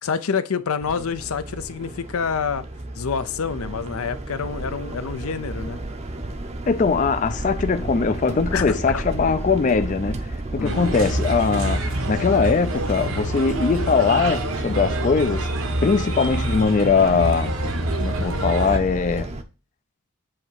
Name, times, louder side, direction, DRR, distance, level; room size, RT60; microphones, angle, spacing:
voice 1, 0.0-2.6 3.0-5.8 8.5-9.0 10.6-11.0, left 6 dB, 80° left, 0.6 m, -27 dB
sound 1, 0.8-19.4, right 2 dB, 30° right, 0.6 m, -33 dB
voice 2, 6.7-15.5 15.8-17.5 18.0-19.3, left 5 dB, 35° left, 0.3 m, -21 dB
Bird, 10.6-18.8, right 1 dB, 70° right, 1.1 m, -26 dB
7.7 x 2.9 x 4.6 m
head